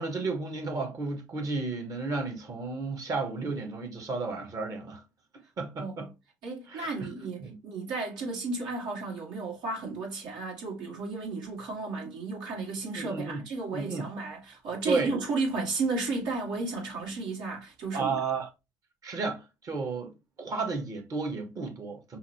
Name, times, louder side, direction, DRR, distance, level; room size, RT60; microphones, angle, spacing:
voice 1, 0.0-5.0 5.6-6.1 6.7-7.1 7.4-7.6 13.0-13.4 13.7-14.1 14.9-15.1 17.9-18.5 19.0-22.2, right 3 dB, 40° right, 1.4 m, -33 dB
voice 2, 5.8-6.1 6.4-18.2, right 3 dB, 65° right, 1.6 m, -33 dB
5.6 x 2.1 x 2.9 m
hypercardioid pair, 60°, 8 cm